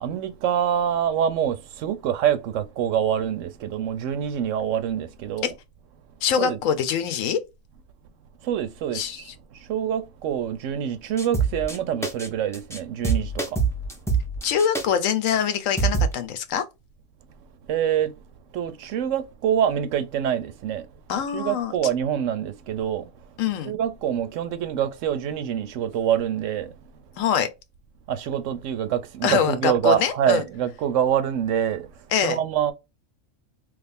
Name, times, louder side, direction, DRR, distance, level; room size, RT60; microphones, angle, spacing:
voice 1, 0.0-5.5 6.4-6.6 8.4-13.6 17.7-18.2 18.5-20.9 21.3-23.1 23.6-26.7 28.1-32.7, right 9 dB, 75° right, 0.9 m, -25 dB
voice 2, 6.2-7.4 8.9-9.2 14.4-16.6 21.1-21.7 23.4-23.8 27.2-27.5 29.2-30.4 32.1-32.4, left 8 dB, 80° left, 1.0 m, -24 dB
sound 1, 11.2-11.8 12.0-12.3 12.5-12.8 13.0-14.8 15.3-15.4 15.8-16.1, right 5 dB, 5° left, 0.3 m, -24 dB
3.3 x 2.5 x 3.4 m
omnidirectional pair, 1.4 m